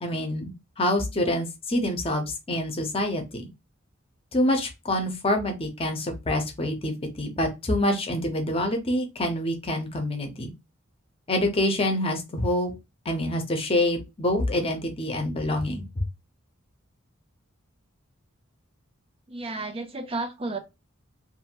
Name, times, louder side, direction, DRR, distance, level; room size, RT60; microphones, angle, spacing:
voice 1, 0.0-3.5 4.3-10.5 11.3-12.7 13.0-16.0, left 1 dB, 30° left, 0.7 m, -26 dB
voice 2, 19.3-20.6, right 2 dB, 30° right, 0.5 m, -32 dB
2.6 x 2.5 x 2.8 m
head